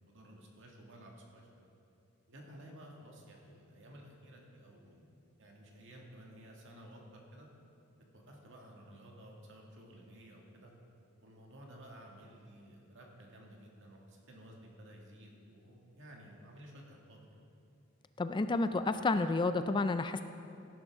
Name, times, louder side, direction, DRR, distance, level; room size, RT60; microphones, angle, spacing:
voice 1, 0.1-1.7 2.3-5.1 5.4-7.5 8.1-10.7 11.2-17.2, equal, 60° right, -1 dB, 2.0 m, -54 dB
voice 2, 18.2-20.2, left 3 dB, 20° left, 10 dB, 0.3 m, -30 dB
17.0 x 11.0 x 3.6 m, 2.6 s
head